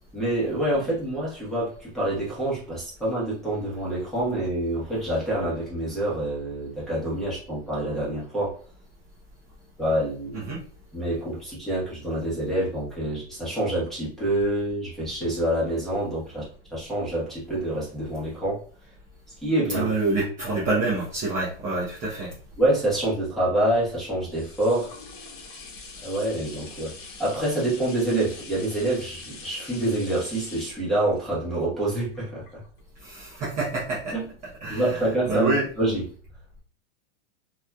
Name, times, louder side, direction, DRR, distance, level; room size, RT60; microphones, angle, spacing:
voice 1, 0.1-8.6 9.8-10.5 10.9-16.4 16.7-18.6 19.4-19.9 22.6-24.9 26.0-32.6 34.1-34.2 34.7-36.0, right 1 dB, ahead, 1.2 m, -26 dB
voice 2, 19.7-22.3 33.0-34.2 34.6-35.7, right 2 dB, 25° right, 0.8 m, -27 dB
sound 1, 24.3-33.0 33.6-33.7, left 4 dB, 45° left, 1.1 m, -44 dB
3.0 x 2.7 x 2.3 m
hypercardioid pair, 145°, 32 cm